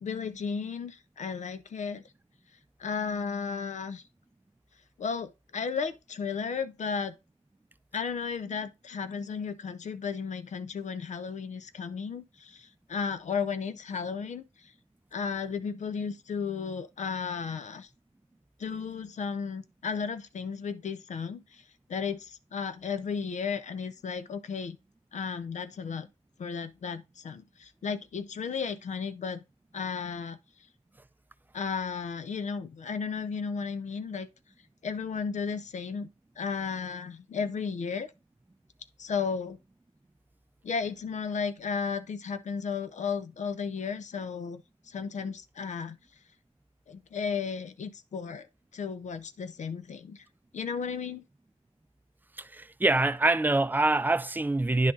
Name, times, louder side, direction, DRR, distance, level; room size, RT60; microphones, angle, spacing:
voice 1, 0.0-2.0 2.8-4.0 5.0-7.2 7.9-14.7 15.1-17.9 18.6-24.8 25.1-26.1 26.4-29.4 29.7-30.4 31.5-34.3 34.8-36.1 36.4-38.1 39.0-39.6 40.6-46.0 46.9-48.5 48.7-50.3 50.5-51.2, left 6 dB, 75° left, 0.6 m, -34 dB
voice 2, 52.4-54.9, right 2 dB, 15° right, 0.4 m, -25 dB
9.8 x 3.7 x 3.8 m
cardioid pair, 50°, 12 cm